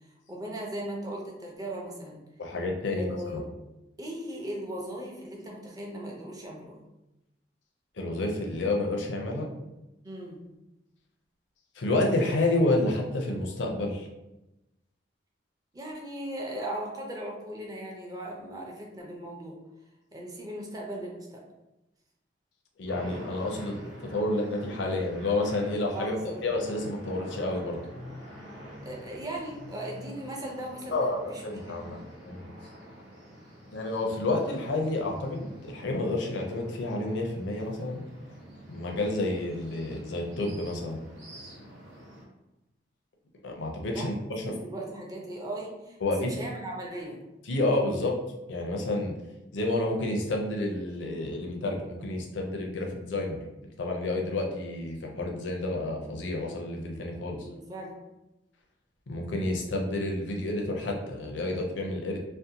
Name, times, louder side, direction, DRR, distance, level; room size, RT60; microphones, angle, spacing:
voice 1, 0.3-2.2 2.8-3.5 4.0-6.8 10.0-10.4 15.7-19.6 20.1-21.4 25.9-26.4 28.8-31.8 43.9-44.1 44.4-47.2 57.2-58.0, right 1 dB, 20° right, -2 dB, 0.5 m, -38 dB
voice 2, 2.4-3.4 8.0-9.5 11.8-14.1 22.8-23.8 24.1-26.2 26.4-27.8 30.9-32.0 32.3-32.5 33.7-38.0 38.7-41.0 43.4-44.1 44.4-44.6 46.0-46.4 47.5-48.1 48.5-49.1 49.5-53.4 53.8-57.5 59.1-62.2, left 2 dB, 85° left, 1 dB, 0.5 m, -29 dB
sound 1, 22.9-42.2, equal, 80° right, 1.0 m, -47 dB
2.6 x 2.1 x 2.7 m, 0.97 s
head